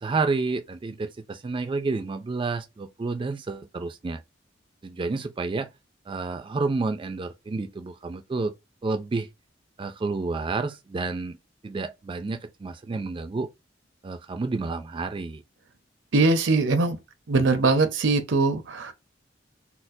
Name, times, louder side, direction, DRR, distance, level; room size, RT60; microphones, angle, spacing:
voice 1, 0.0-4.2 4.8-5.7 6.1-8.5 8.8-9.3 9.8-11.4 11.6-13.5 14.0-15.4, right 3 dB, 25° right, 0.3 m, -30 dB
voice 2, 16.1-17.0 17.3-18.9, right 3 dB, 85° right, 0.7 m, -21 dB
4.2 x 2.0 x 2.6 m
head